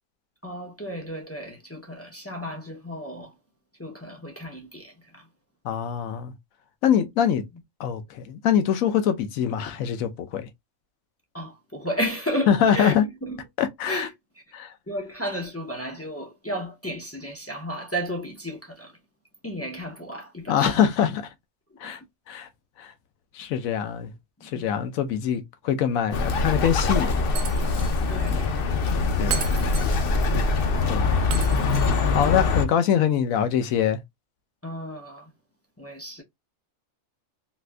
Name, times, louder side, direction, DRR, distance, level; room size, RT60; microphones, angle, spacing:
voice 1, 0.4-3.4 3.8-5.3 11.3-13.4 13.9-14.4 14.9-19.0 19.4-20.8 21.7-22.1 23.4-23.5 24.4-24.7 28.1-28.5 34.6-35.3 35.8-36.2, equal, 20° left, 0.3 m, -33 dB
voice 2, 5.6-6.3 6.8-7.4 7.8-10.5 12.5-13.0 13.6-14.1 14.5-14.7 20.5-21.3 21.8-22.0 22.3-22.5 22.8-22.9 23.3-24.1 24.4-27.1 29.2-29.4 30.9-31.1 32.1-34.0, left 9 dB, 80° left, 1.1 m, -24 dB
Bird, 26.1-32.6, left 3 dB, 55° left, 0.6 m, -23 dB
Shatter, 27.4-28.0 28.3-28.4 29.3-30.3 31.3-32.3, right 8 dB, 75° right, 1.1 m, -34 dB
4.2 x 2.5 x 2.2 m
omnidirectional pair, 1.4 m